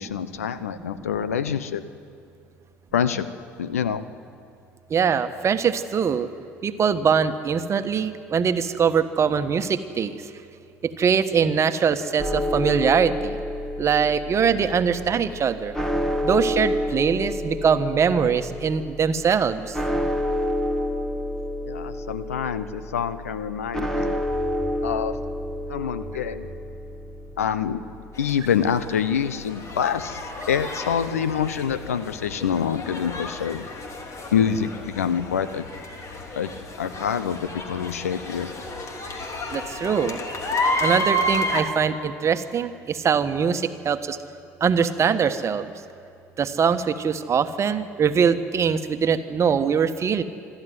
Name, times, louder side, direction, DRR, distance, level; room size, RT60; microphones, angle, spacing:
voice 1, 0.0-1.8 2.9-3.3 3.6-4.1 21.6-24.2 24.8-25.2 25.7-26.5 27.4-27.8 28.2-33.7 34.3-35.7 36.3-36.5 36.8-38.5, left 8 dB, 85° left, 14 dB, 0.9 m, -26 dB
voice 2, 4.9-6.3 6.6-10.2 10.8-13.4 13.8-15.7 16.2-19.8 39.5-40.2 40.8-44.2 44.6-45.7 46.4-50.2, right 6 dB, 40° right, 10 dB, 1.4 m, -22 dB
sound 1, 12.2-30.1, left 1 dB, 5° left, 2.1 m, -30 dB
crowd ext cheer encore spanish, 28.2-41.6, left 1 dB, 40° left, 3.1 m, -31 dB
26.0 x 13.0 x 9.5 m, 2.5 s
hypercardioid pair, 65°, 8 cm